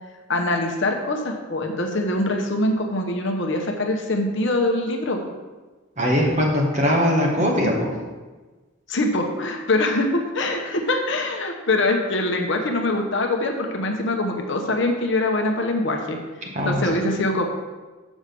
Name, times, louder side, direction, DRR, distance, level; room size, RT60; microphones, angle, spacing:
voice 1, 0.3-5.2 7.6-7.7 8.9-16.2 16.7-17.5, left 2 dB, 55° left, 3 dB, 0.9 m, -23 dB
voice 2, 6.0-7.9 16.5-16.9, equal, 35° right, -1 dB, 1.5 m, -20 dB
6.3 x 5.0 x 6.8 m, 1.3 s
head